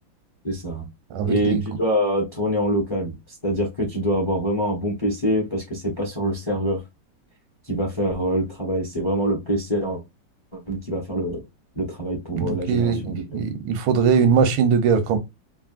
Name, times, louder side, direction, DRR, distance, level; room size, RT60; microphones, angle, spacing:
voice 1, 0.4-0.9 1.2-3.2 3.4-6.8 7.6-10.0 10.5-11.4 11.8-13.4, equal, 25° left, 0.6 m, -25 dB
voice 2, 1.1-1.6 12.3-15.2, right 6 dB, 85° right, 1.4 m, -21 dB
3.3 x 2.4 x 2.4 m
omnidirectional pair, 2.1 m